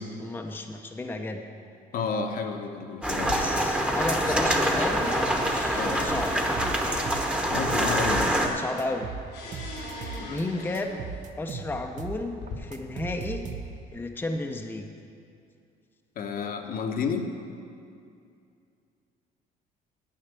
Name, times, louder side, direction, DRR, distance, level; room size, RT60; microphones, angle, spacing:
voice 1, 0.0-1.4 3.2-5.2 5.4-6.6 8.4-9.1 10.3-11.0 11.4-13.5 13.9-14.9, left 2 dB, 10° left, 3 dB, 0.6 m, -33 dB
voice 2, 1.9-3.5 4.2-4.5 5.8-6.1 7.5-8.3 10.2-10.5 16.2-17.3, left 5 dB, 60° left, 4 dB, 1.0 m, -31 dB
sound 1, 3.0-8.5, right 1 dB, 5° right, 1.0 m, -25 dB
sound 2, 3.2-4.1 4.4-11.2 11.9-12.5, left 3 dB, 90° left, 2.9 m, -43 dB
sound 3, 6.1-8.5 8.8-10.4 10.7-14.0, right 6 dB, 45° right, 0.8 m, -38 dB
10.0 x 5.7 x 8.2 m, 2.5 s
cardioid pair, 110°, 17 cm